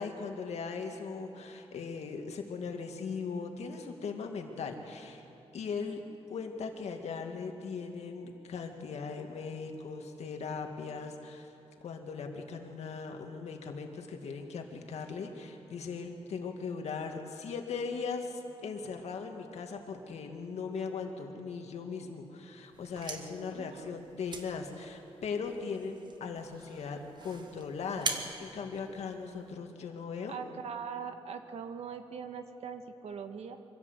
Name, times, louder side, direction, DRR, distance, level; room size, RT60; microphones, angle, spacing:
voice 1, 0.0-5.2 5.5-6.0 6.3-11.5 11.8-30.6, left 5 dB, 90° left, 4 dB, 2.1 m, -39 dB
sound 1, 22.7-29.5, right 4 dB, 45° right, 1.6 m, -43 dB
voice 2, 23.5-23.9 30.3-33.6, right 6 dB, 75° right, 7 dB, 1.5 m, -41 dB
24.5 x 16.0 x 8.1 m, 2.9 s
wide cardioid pair, 135°, 11 cm